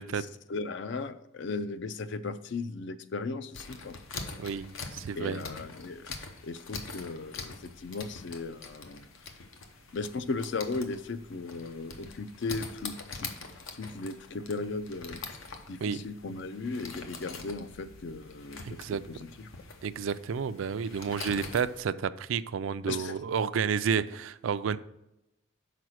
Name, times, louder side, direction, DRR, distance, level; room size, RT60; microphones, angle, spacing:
voice 1, 0.2-4.0 5.2-6.1 6.4-9.1 9.9-13.3 13.7-15.2 15.7-19.5 22.9-23.2, left 3 dB, 55° left, 13 dB, 0.4 m, -37 dB
sound 1, 3.5-21.8, left 4 dB, 80° left, 0.9 m, -44 dB
voice 2, 4.4-5.4 15.8-16.0 18.6-19.0 19.8-24.8, right 6 dB, 70° right, 14 dB, 0.4 m, -31 dB
5.9 x 4.9 x 6.2 m, 0.86 s
head